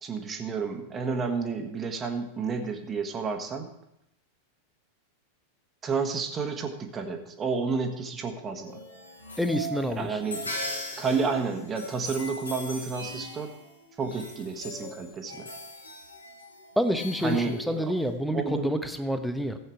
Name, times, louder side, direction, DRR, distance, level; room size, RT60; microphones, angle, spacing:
voice 1, 0.0-3.7 5.8-8.8 10.0-10.5 11.0-13.5 14.0-15.5 17.2-17.9 18.3-18.8, right 4 dB, 20° right, 5 dB, 1.5 m, -31 dB
sound 1, 8.6-18.1, equal, 75° left, 2.5 m, -40 dB
voice 2, 9.4-10.2 16.8-19.6, equal, ahead, 8 dB, 1.0 m, -28 dB
15.0 x 8.3 x 4.7 m, 0.80 s
figure-of-eight pair, 90°, 0 cm